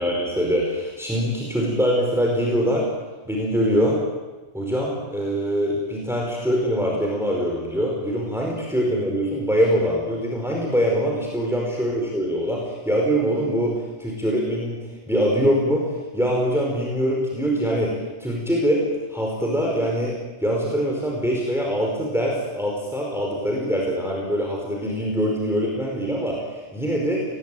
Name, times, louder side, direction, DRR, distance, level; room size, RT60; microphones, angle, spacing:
voice 1, 0.0-2.9 3.3-4.0 4.5-18.8 19.1-20.2 20.4-27.2, equal, ahead, -2 dB, 5.0 m, -23 dB
26.5 x 20.0 x 9.3 m, 1.2 s
omnidirectional pair, 1.2 m